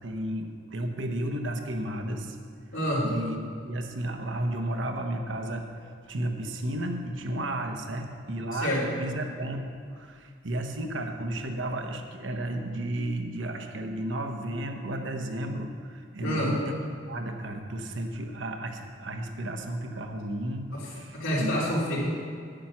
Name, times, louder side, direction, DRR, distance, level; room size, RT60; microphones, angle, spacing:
voice 1, 0.0-2.4 3.0-5.7 6.1-16.8 17.1-21.6, right 1 dB, 70° right, 5 dB, 1.0 m, -33 dB
voice 2, 2.7-3.1 8.5-8.8 16.2-16.5 21.1-22.1, equal, 90° left, -10 dB, 3.2 m, -27 dB
10.0 x 9.0 x 6.0 m, 2.1 s
head